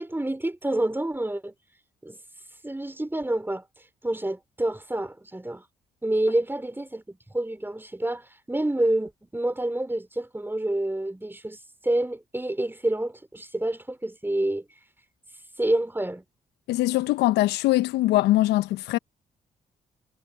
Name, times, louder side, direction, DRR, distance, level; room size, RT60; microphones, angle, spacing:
voice 1, 0.0-1.5 2.0-2.2 2.6-3.6 4.0-5.6 6.0-14.6 15.6-16.2, right 1 dB, 10° right, 4.6 m, -28 dB
voice 2, 16.7-19.0, left 16 dB, 75° left, 1.0 m, -22 dB
hypercardioid pair, 45°, 18 cm